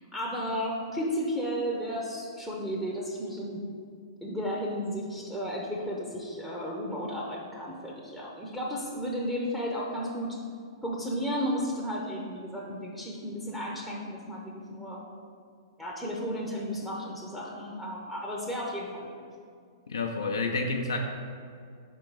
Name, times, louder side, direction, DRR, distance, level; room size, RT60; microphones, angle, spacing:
voice 1, 0.0-3.6 4.2-10.4 10.8-15.0 15.8-19.1, equal, ahead, -3 dB, 0.7 m, -33 dB
voice 2, 19.9-21.0, left 3 dB, 70° left, 1 dB, 0.5 m, -29 dB
5.2 x 3.8 x 4.7 m, 2.3 s
figure-of-eight pair, 110°, 2 cm